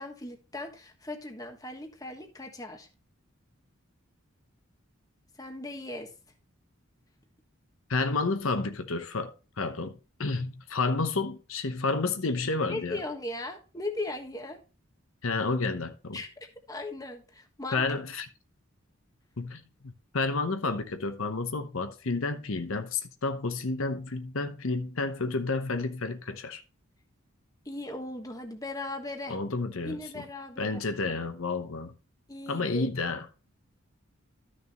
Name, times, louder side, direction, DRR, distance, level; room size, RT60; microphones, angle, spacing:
voice 1, 0.0-2.9 5.4-6.1 12.7-14.6 16.1-17.8 27.6-29.4 29.8-30.8 32.3-32.9, left 2 dB, 15° left, 1.3 m, -38 dB
voice 2, 7.9-9.3 9.6-13.0 15.2-16.2 17.7-18.3 19.4-26.6 29.3-30.2 30.6-31.9 32.5-33.3, left 3 dB, 75° left, 1.0 m, -30 dB
13.0 x 6.4 x 3.0 m
head